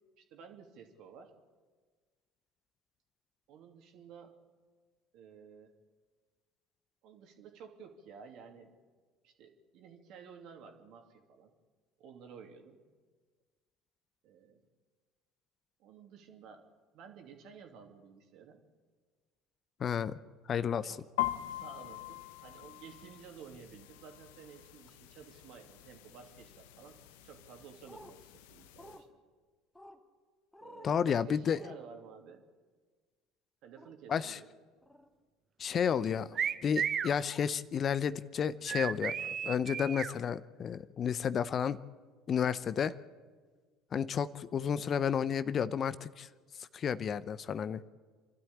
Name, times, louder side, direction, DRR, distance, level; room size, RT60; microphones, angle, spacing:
voice 1, 0.2-1.3 3.5-4.3 5.1-5.7 7.0-8.8 9.2-11.5 12.0-12.8 14.2-14.6 15.8-16.6 16.9-18.6 20.8-21.0 21.4-27.0 27.2-29.2 30.6-32.4 33.6-34.5, right 6 dB, 55° right, 4 dB, 2.8 m, -53 dB
voice 2, 19.8-20.2 20.5-20.9 30.8-31.6 34.1-34.4 35.6-36.4 36.6-41.8 42.3-42.9 43.9-46.3 46.6-47.9, left 7 dB, 40° left, 16 dB, 0.7 m, -32 dB
sound 1, 21.2-29.0, left 15 dB, 70° left, 1.0 m, -43 dB
sound 2, 27.9-28.1 28.8-29.0 29.8-30.0 30.5-31.0 31.5-31.8 33.8-33.9 34.8-35.1 36.3-36.5 37.3-37.4, left 1 dB, 5° left, 2.4 m, -52 dB
sound 3, 36.4-37.1 38.7-40.1, right 8 dB, 40° right, 0.9 m, -33 dB
28.5 x 12.5 x 8.7 m, 1.5 s
figure-of-eight pair, 65°, 0 cm